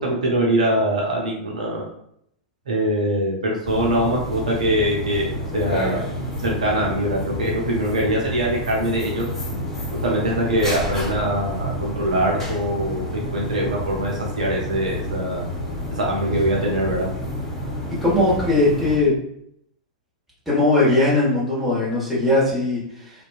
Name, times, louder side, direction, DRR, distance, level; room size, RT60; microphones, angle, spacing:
voice 1, 0.0-1.8 2.7-6.0 6.4-9.3 10.0-15.4 16.0-17.1, right 1 dB, 70° right, -2 dB, 0.6 m, -23 dB
sound 1, 3.6-19.0, left 1 dB, 10° left, 0.9 m, -29 dB
voice 2, 18.0-19.1 20.5-23.1, left 2 dB, 5° right, -9 dB, 1.3 m, -19 dB
2.7 x 2.2 x 2.4 m, 0.72 s
figure-of-eight pair, 100°, 4 cm